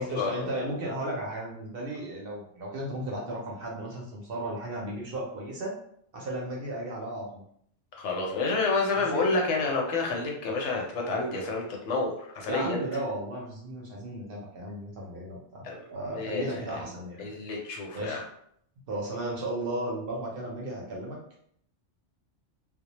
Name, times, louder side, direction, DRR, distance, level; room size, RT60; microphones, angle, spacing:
voice 1, 0.0-5.7 6.1-7.4 9.0-9.3 12.5-17.2 17.9-18.2 18.9-21.2, right 1 dB, 60° right, -2 dB, 0.6 m, -35 dB
voice 2, 7.9-12.8 15.6-15.8 16.1-16.8 17.2-18.2, left 3 dB, 75° left, 0 dB, 0.9 m, -29 dB
2.1 x 2.1 x 2.8 m, 0.68 s
omnidirectional pair, 1.3 m